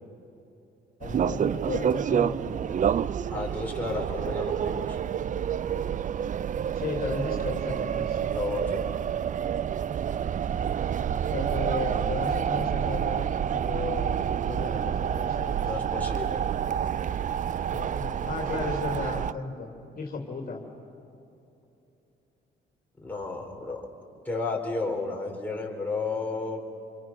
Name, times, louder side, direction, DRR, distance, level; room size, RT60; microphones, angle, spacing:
voice 1, 1.0-2.8 6.7-8.2 11.3-15.7 17.7-19.7 20.0-20.6, left 4 dB, 45° left, 0 dB, 3.2 m, -35 dB
sound 1, 1.0-19.3, right 9 dB, 40° right, 0.4 m, -28 dB
voice 2, 3.3-5.0 8.3-8.8 15.6-16.5 23.0-23.8 24.2-26.6, left 3 dB, 10° left, -1 dB, 4.5 m, -32 dB
27.5 x 23.0 x 6.1 m, 2.8 s
cardioid pair, 90°, 20 cm